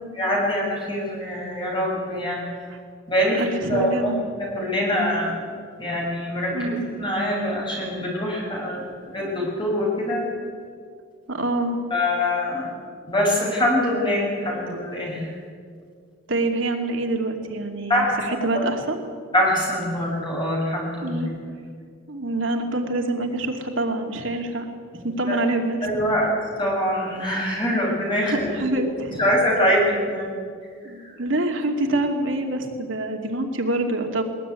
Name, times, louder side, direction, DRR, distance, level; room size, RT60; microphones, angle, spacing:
voice 1, 0.2-2.5 3.1-4.2 4.5-5.5 5.8-6.7 7.0-10.3 11.9-12.7 13.1-15.3 17.9-18.2 18.6-18.7 19.3-21.2 24.9-25.3 25.8-26.3 26.6-28.5 29.2-30.3 31.0-31.1, left 1 dB, 25° left, -3 dB, 7.1 m, -24 dB
voice 2, 3.4-4.2 6.5-6.8 11.3-11.8 16.3-19.0 21.0-21.3 22.1-24.7 25.0-25.9 28.2-29.2 30.8-34.2, right 2 dB, 70° right, 3 dB, 2.5 m, -26 dB
21.0 x 19.5 x 9.6 m, 2.1 s
head